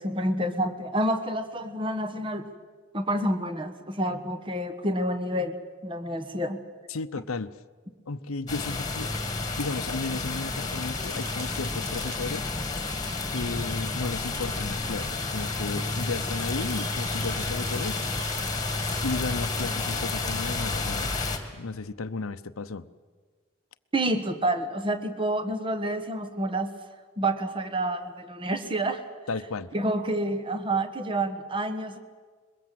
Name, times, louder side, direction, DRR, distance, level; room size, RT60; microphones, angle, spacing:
voice 1, 0.0-2.5 2.9-5.5 5.8-6.6 23.9-26.7 27.2-29.0 29.7-32.0, right 1 dB, 25° right, 9 dB, 1.2 m, -28 dB
voice 2, 6.9-7.5 8.1-9.1 9.6-12.5 13.3-18.0 19.0-21.2 21.6-22.9 29.3-29.7, left 3 dB, 75° left, 13 dB, 0.8 m, -34 dB
sound 1, 8.5-21.4, left 3 dB, 20° left, 2.1 m, -31 dB
sound 2, 10.9-12.4 15.8-21.1, right 3 dB, 85° right, 4.2 m, -45 dB
22.0 x 22.0 x 7.7 m, 1.5 s
head